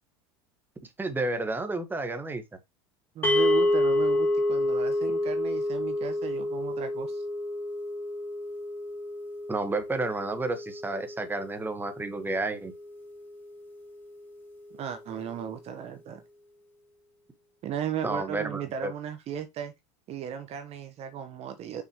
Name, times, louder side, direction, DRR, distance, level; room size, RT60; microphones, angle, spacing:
voice 1, 1.0-2.4 9.5-12.7 18.0-18.9, right 2 dB, 15° right, 1.6 m, -31 dB
voice 2, 3.1-7.2 14.7-16.2 17.6-19.7 20.1-21.8, right 9 dB, 45° right, 1.3 m, -36 dB
sound 1, 3.2-13.5, left 1 dB, 15° left, 2.4 m, -29 dB
6.2 x 6.1 x 3.2 m
supercardioid pair, 100°, 15 cm